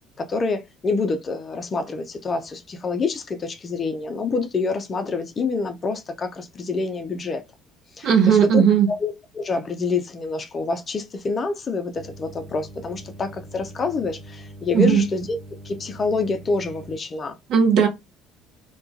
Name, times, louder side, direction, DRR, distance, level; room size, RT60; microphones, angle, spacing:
voice 1, 0.2-7.4 8.0-8.6 9.0-15.3 15.6-17.4, left 4 dB, 35° left, 0.4 m, -27 dB
voice 2, 8.0-8.9 14.7-15.1 17.5-17.9, right 7 dB, 55° right, 0.7 m, -16 dB
sound 1, 11.9-17.0, right 1 dB, 20° right, 0.8 m, -42 dB
2.3 x 2.1 x 2.5 m
figure-of-eight pair, 55°, 0 cm